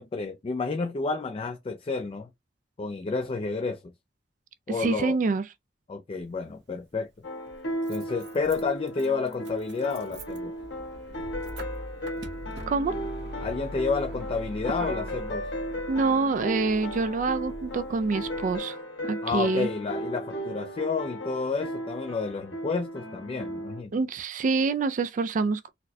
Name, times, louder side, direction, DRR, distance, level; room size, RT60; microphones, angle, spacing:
voice 1, 0.0-2.3 2.8-3.9 4.7-5.2 5.9-7.3 7.9-10.5 13.4-15.5 19.2-23.9, left 4 dB, 30° left, 0.3 m, -30 dB
voice 2, 4.8-5.4 12.7-12.9 15.9-18.8 19.0-19.7 23.9-25.7, right 4 dB, 45° right, 0.3 m, -26 dB
Motor vehicle (road), 6.2-6.3 7.5-18.6, right 1 dB, 70° right, 0.7 m, -41 dB
sound 1, 7.2-23.8, equal, 90° left, 1.1 m, -36 dB
4.0 x 2.2 x 2.6 m
head